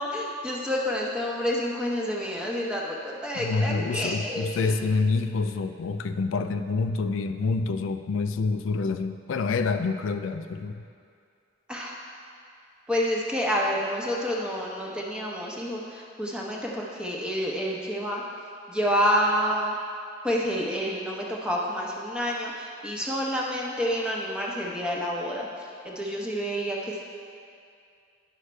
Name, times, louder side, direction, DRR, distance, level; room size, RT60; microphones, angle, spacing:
voice 1, 0.0-4.7 11.7-12.0 12.9-18.2 18.7-19.7 20.2-27.0, equal, 5° right, -3 dB, 0.9 m, -28 dB
voice 2, 3.3-10.8, left 4 dB, 85° left, 8 dB, 0.4 m, -27 dB
9.8 x 6.4 x 3.3 m, 2.4 s
head